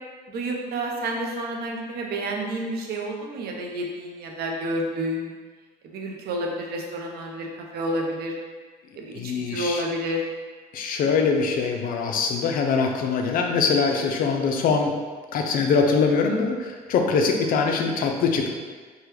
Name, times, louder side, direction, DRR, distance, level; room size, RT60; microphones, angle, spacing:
voice 1, 0.3-5.3 5.8-8.3 8.9-10.2, right 1 dB, 65° right, 0 dB, 0.6 m, -30 dB
voice 2, 9.1-9.8 10.7-14.9 15.3-18.5, left 5 dB, 55° left, 3 dB, 0.4 m, -23 dB
3.3 x 2.2 x 3.0 m, 1.5 s
cardioid pair, 110°, 17 cm